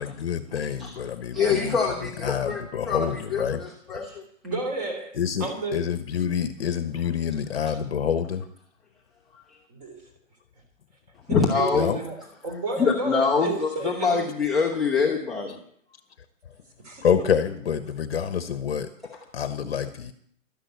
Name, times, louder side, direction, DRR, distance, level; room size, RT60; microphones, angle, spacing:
voice 1, 0.0-1.7 2.2-3.6 5.1-8.4 11.7-12.0 17.0-18.9 19.3-20.1, left 8 dB, 50° left, 9 dB, 1.1 m, -27 dB
voice 2, 1.3-4.2 9.3-9.6 11.3-11.9 12.8-15.6 19.0-19.1, left 5 dB, ahead, -4 dB, 0.9 m, -25 dB
voice 3, 4.4-5.8 9.7-10.0 11.3-12.2 12.4-14.2 16.8-17.0, right 3 dB, 30° right, 5 dB, 3.6 m, -31 dB
12.5 x 11.0 x 8.1 m, 0.65 s
hypercardioid pair, 175°, 40 cm